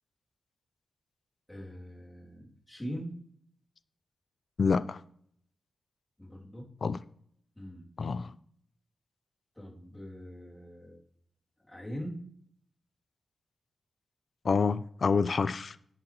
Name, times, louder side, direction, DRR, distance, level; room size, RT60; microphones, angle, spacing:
voice 1, 1.5-3.1 6.2-6.7 7.6-7.9 9.6-11.0 11.7-12.2, equal, 10° left, 2.7 m, -42 dB
voice 2, 4.6-5.0 6.8-7.0 8.0-8.3 14.4-15.8, left 5 dB, 50° left, 0.4 m, -27 dB
10.5 x 7.9 x 3.0 m
cardioid pair, 90°, 0 cm